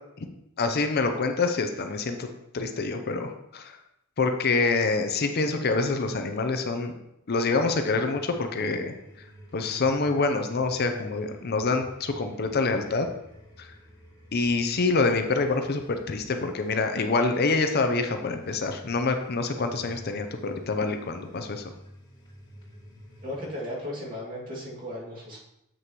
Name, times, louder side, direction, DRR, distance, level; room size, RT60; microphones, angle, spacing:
voice 1, 0.6-2.3 2.5-3.8 4.2-6.9 7.3-8.9 9.5-13.1 13.6-13.7 14.3-21.6, left 3 dB, 50° left, 6 dB, 0.6 m, -26 dB
sound 1, 7.5-23.5, equal, 25° left, 2.6 m, -50 dB
voice 2, 23.2-25.4, left 1 dB, 40° right, -5 dB, 2.2 m, -36 dB
7.6 x 6.4 x 3.0 m, 0.82 s
head